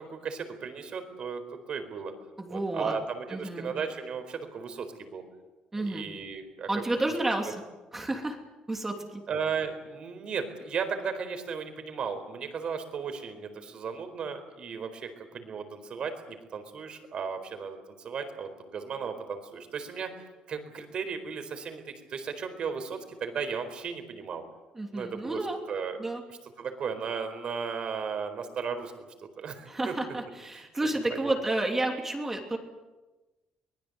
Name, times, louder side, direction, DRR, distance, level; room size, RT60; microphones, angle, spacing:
voice 1, 0.0-2.1 2.5-5.2 5.8-6.8 9.3-20.1 20.5-21.8 22.1-24.4 24.9-26.0 26.3-28.9 29.4-29.9 30.5-30.6 31.1-31.3, right 6 dB, 45° right, 8 dB, 4.4 m, -35 dB
voice 2, 2.4-3.0 3.3-3.7 5.7-6.1 6.7-7.5 7.9-8.4 8.7-9.2 24.7-25.6 26.0-26.2 29.7-32.6, right 2 dB, 15° right, 2 dB, 3.0 m, -30 dB
24.5 x 20.5 x 8.1 m, 1.1 s
cardioid pair, 150°, 2 cm